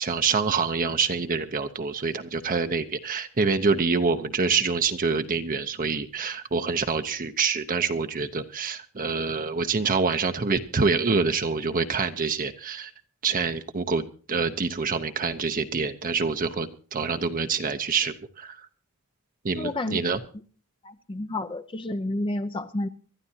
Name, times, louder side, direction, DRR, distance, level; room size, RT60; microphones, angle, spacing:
voice 1, 0.0-12.9 13.2-18.6 19.4-20.2, right 4 dB, 40° right, 0.8 m, -26 dB
voice 2, 19.5-20.0 20.8-22.9, left 1 dB, 25° left, 0.6 m, -30 dB
25.0 x 12.0 x 2.8 m
head